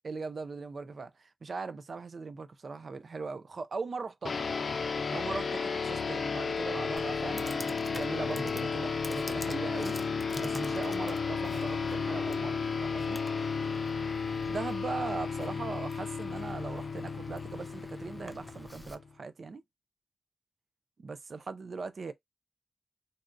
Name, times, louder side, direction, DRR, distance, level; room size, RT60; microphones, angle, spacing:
voice 1, 0.0-4.3 5.1-10.0 10.4-13.2 14.5-19.6 21.0-22.1, right 4 dB, 75° right, 0.4 m, -39 dB
sound 1, 4.2-19.1, left 5 dB, 85° left, 0.4 m, -33 dB
Computer keyboard, 7.0-18.9, equal, 5° left, 0.4 m, -48 dB
4.0 x 2.2 x 2.5 m
wide cardioid pair, 70°, 0 cm